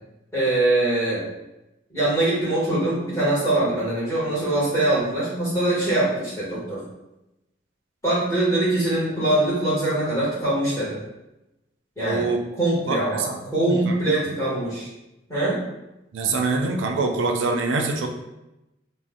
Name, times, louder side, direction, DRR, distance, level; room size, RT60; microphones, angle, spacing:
voice 1, 0.3-1.2 1.9-6.8 8.0-11.0 12.0-12.3 12.6-14.9 15.3-15.6, right 2 dB, 15° left, -9 dB, 1.2 m, -23 dB
voice 2, 12.0-12.4 12.9-14.0 16.1-18.1, right 3 dB, 85° right, 3 dB, 0.4 m, -25 dB
2.5 x 2.1 x 3.5 m, 0.94 s
head